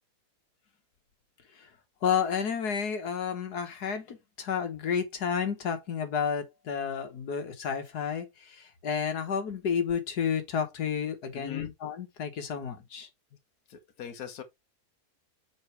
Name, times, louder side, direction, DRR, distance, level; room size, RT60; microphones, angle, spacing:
voice 1, 2.0-13.1, left 7 dB, 90° left, 1.8 m, -31 dB
voice 2, 11.3-11.7 13.7-14.4, left 9 dB, 75° left, 1.6 m, -40 dB
7.9 x 4.0 x 3.4 m
omnidirectional pair, 1.6 m